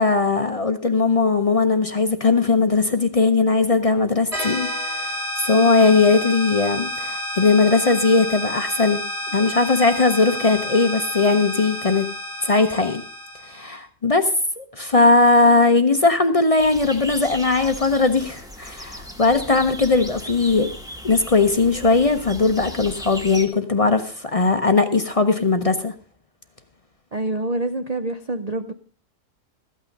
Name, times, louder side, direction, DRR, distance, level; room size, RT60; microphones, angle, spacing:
voice 1, 0.0-4.7 5.0-5.1 5.4-9.0 9.3-12.1 12.4-13.0 13.5-20.7 21.0-25.9, left 3 dB, 40° left, 8 dB, 0.5 m, -19 dB
sound 1, 4.3-13.7, left 1 dB, 20° right, 2.6 m, -30 dB
sound 2, 16.6-23.5, equal, 5° right, 1.1 m, -37 dB
voice 2, 27.1-28.7, right 2 dB, 70° right, 8 dB, 0.3 m, -26 dB
14.0 x 8.8 x 5.3 m, 0.41 s
omnidirectional pair, 1.7 m